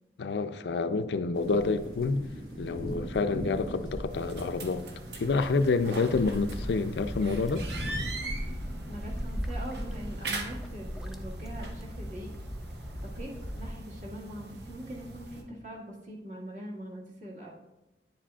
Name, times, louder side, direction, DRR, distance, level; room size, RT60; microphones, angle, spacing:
voice 1, 0.2-2.2 2.6-4.9 5.2-7.6, left 3 dB, 80° left, 0.4 m, -28 dB
sound 1, 1.3-8.1, equal, 60° right, 1.5 m, -41 dB
sound 2, 4.1-15.4, right 2 dB, 75° right, 0.9 m, -41 dB
sound 3, 6.1-13.7, equal, ahead, 0.4 m, -38 dB
voice 2, 8.9-12.3 13.0-17.5, right 1 dB, 45° right, 1.7 m, -42 dB
9.3 x 7.4 x 2.4 m
head